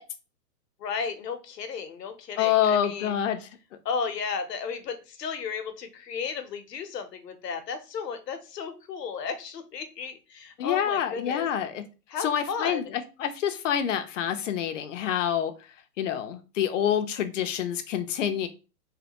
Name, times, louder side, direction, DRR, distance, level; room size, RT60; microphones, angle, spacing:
voice 1, 0.8-3.2 3.8-11.5 12.1-12.9, left 5 dB, 80° left, 8 dB, 0.9 m, -34 dB
voice 2, 2.4-3.5 10.6-11.8 12.2-15.5 16.0-18.5, left 9 dB, 50° left, 8 dB, 0.6 m, -27 dB
3.2 x 2.1 x 2.9 m, 0.32 s
hypercardioid pair, 145°, 48 cm